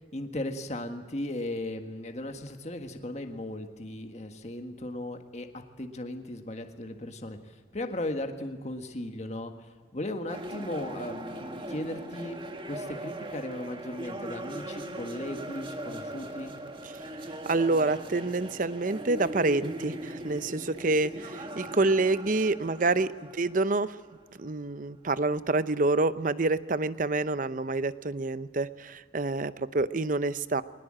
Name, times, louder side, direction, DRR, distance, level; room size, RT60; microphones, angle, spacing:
voice 1, 0.1-9.5 9.9-12.4 12.6-16.5, left 1 dB, 35° left, 6 dB, 1.6 m, -37 dB
sound 1, 10.3-24.4, right 1 dB, 25° right, 1.8 m, -40 dB
voice 2, 17.5-24.0 24.4-30.6, right 2 dB, 45° right, 14 dB, 0.7 m, -27 dB
22.5 x 19.5 x 7.6 m, 1.5 s
head